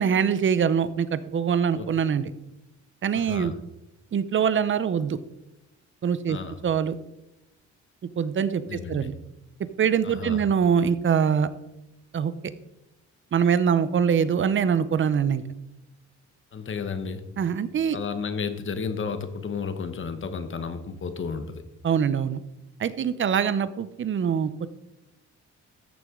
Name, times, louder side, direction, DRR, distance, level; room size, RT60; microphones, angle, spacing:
voice 1, 0.0-2.3 3.0-3.5 4.1-5.2 6.0-6.4 6.6-7.0 8.2-9.1 9.8-11.5 12.1-12.3 13.3-15.4 17.4-18.0 21.8-22.4 22.8-24.7, right 7 dB, 40° right, 14 dB, 0.7 m, -23 dB
voice 2, 3.1-3.5 6.3-6.6 8.7-9.1 10.0-10.4 16.5-17.2 17.9-21.6, left 5 dB, 40° left, 10 dB, 1.1 m, -32 dB
14.0 x 6.7 x 3.8 m, 0.94 s
cardioid pair, 90°, 30 cm